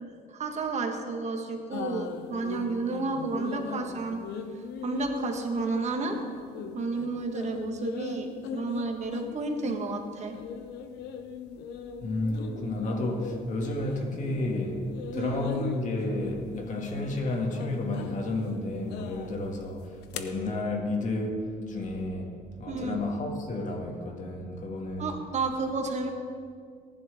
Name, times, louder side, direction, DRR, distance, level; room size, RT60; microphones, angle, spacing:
voice 1, 0.0-4.2 4.8-6.2 6.7-10.3 15.1-15.5 22.7-23.0 25.0-26.1, right 3 dB, 45° right, 1.5 m, -31 dB
sound 1, 1.7-14.0 14.3-20.2, left 6 dB, 90° left, 0.9 m, -40 dB
voice 2, 12.0-22.3 22.6-25.1, left 2 dB, 45° left, 2.3 m, -31 dB
18.5 x 11.0 x 3.7 m
cardioid pair, 110°, 17 cm